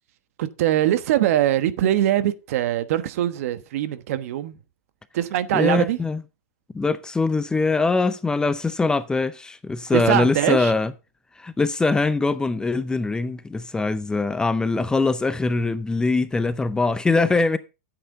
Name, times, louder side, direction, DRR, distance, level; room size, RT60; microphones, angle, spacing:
voice 1, 0.4-4.5 5.1-6.0 9.9-10.7, right 12 dB, 60° right, 1.1 m, -22 dB
voice 2, 5.5-6.2 6.7-10.9 11.4-17.6, left 3 dB, 10° left, 0.6 m, -22 dB
10.0 x 8.1 x 4.0 m
hypercardioid pair, 125°, 9 cm